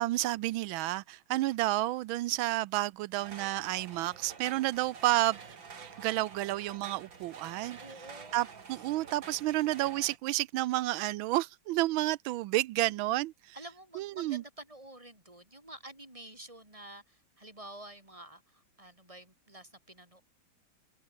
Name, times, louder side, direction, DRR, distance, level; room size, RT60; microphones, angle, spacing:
voice 1, 0.0-5.4 5.8-7.8 8.3-13.3 14.0-14.4, right 17 dB, 90° right, 1.4 m, -30 dB
sound 1, 3.2-10.2, right 5 dB, 70° right, 3.3 m, -49 dB
voice 2, 7.8-8.4 13.5-20.2, right 1 dB, 15° right, 5.5 m, -49 dB
omnidirectional pair, 2.1 m